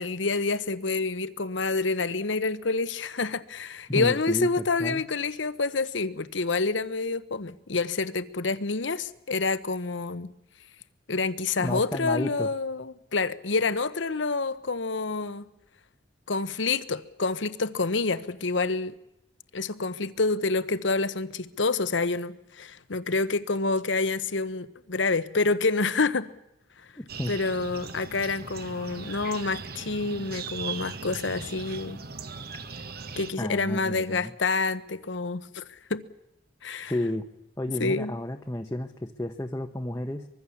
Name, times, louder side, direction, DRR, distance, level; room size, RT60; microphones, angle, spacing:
voice 1, 0.0-10.3 11.1-15.4 16.3-19.0 19.5-26.3 27.3-32.0 33.2-36.0 36.6-36.9 37.8-38.1, left 3 dB, 80° left, 1.0 m, -28 dB
voice 2, 3.9-5.0 11.6-12.5 27.0-27.3 33.4-34.3 36.8-37.2 37.6-40.3, left 1 dB, 15° left, 0.9 m, -31 dB
sound 1, 27.1-33.3, right 5 dB, 55° right, 1.4 m, -39 dB
24.0 x 22.0 x 7.2 m
head